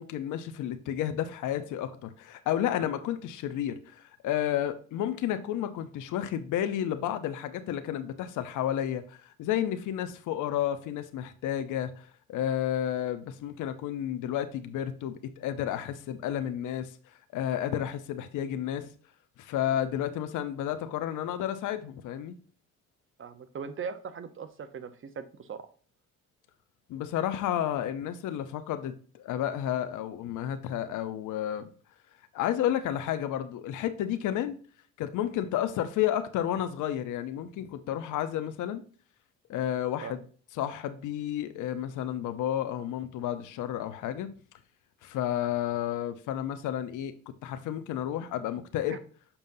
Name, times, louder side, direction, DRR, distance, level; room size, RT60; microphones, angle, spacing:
voice 1, 0.0-16.9 17.3-18.9 19.4-22.4 26.9-31.7 32.3-34.6 35.0-38.8 39.5-40.2 40.6-44.3 45.0-47.1 47.4-49.0, left 11 dB, 85° left, 0.7 m, -31 dB
voice 2, 23.2-25.6 40.0-40.1 48.9-49.0, right 6 dB, 45° right, 0.9 m, -39 dB
7.0 x 5.3 x 2.7 m
cardioid pair, 90°, 30 cm